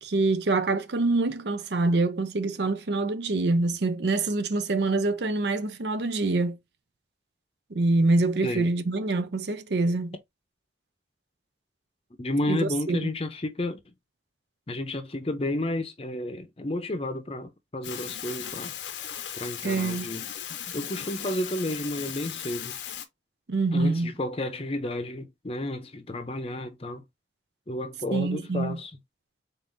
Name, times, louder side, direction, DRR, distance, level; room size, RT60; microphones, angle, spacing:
voice 1, 0.0-6.6 7.7-10.1 12.5-13.1 19.6-20.1 23.5-24.1 28.1-28.8, right 2 dB, 70° right, 0.6 m, -25 dB
voice 2, 12.2-13.8 14.7-18.8 19.4-20.3 20.7-22.8 23.7-27.0 27.7-28.9, left 1 dB, 30° left, 0.6 m, -31 dB
sound 1, 17.8-23.1, left 9 dB, 90° left, 0.7 m, -37 dB
3.9 x 3.8 x 2.6 m
head